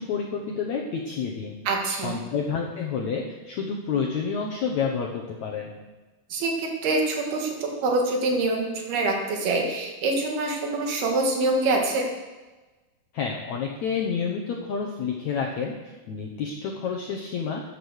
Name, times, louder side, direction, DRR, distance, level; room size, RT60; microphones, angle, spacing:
voice 1, 0.0-1.6 1.9-5.7 13.1-17.6, left 6 dB, 70° left, 0 dB, 1.8 m, -29 dB
voice 2, 1.7-2.2 6.3-12.1, right 2 dB, 70° right, 1 dB, 3.8 m, -25 dB
14.5 x 8.9 x 6.4 m, 1.2 s
omnidirectional pair, 4.7 m